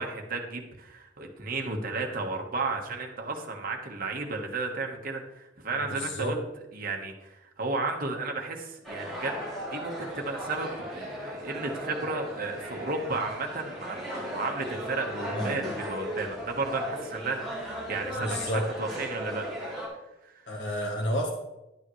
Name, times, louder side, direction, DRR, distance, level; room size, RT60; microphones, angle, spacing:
voice 1, 0.0-6.4 6.7-9.4 9.7-18.5 18.8-19.9 20.2-20.5, right 3 dB, 50° right, 2 dB, 1.4 m, -33 dB
voice 2, 5.8-6.3 15.3-15.6 18.2-18.7 20.5-21.3, equal, 65° left, 0 dB, 1.2 m, -30 dB
sound 1, 8.8-19.9, equal, ahead, 3.4 m, -37 dB
12.0 x 8.7 x 3.2 m, 0.96 s
head